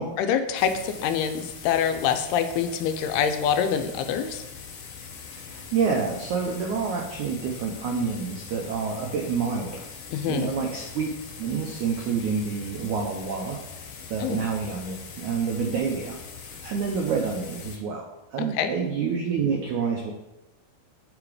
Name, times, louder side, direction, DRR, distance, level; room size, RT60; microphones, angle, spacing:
voice 1, 0.2-4.4 10.1-10.5 14.2-14.4 18.6-18.7, left 8 dB, 90° left, 7 dB, 2.7 m, -25 dB
sound 1, 0.6-17.8, left 6 dB, 70° left, 2.3 m, -42 dB
voice 2, 5.4-9.9 10.3-11.1 11.4-13.6 14.1-16.2 16.6-20.1, right 5 dB, 90° right, 1 dB, 1.7 m, -28 dB
8.6 x 5.0 x 4.9 m, 0.96 s
omnidirectional pair, 4.5 m